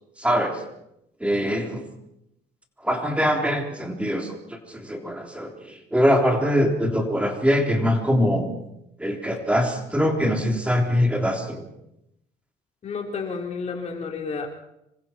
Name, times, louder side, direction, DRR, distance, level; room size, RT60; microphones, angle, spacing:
voice 1, 0.2-0.6 1.2-1.9 2.8-8.5 9.0-11.6, equal, 5° right, 2 dB, 3.4 m, -23 dB
voice 2, 12.8-14.5, left 4 dB, 40° left, 1 dB, 4.2 m, -31 dB
27.0 x 24.5 x 4.5 m, 0.82 s
cardioid pair, 110°, 17 cm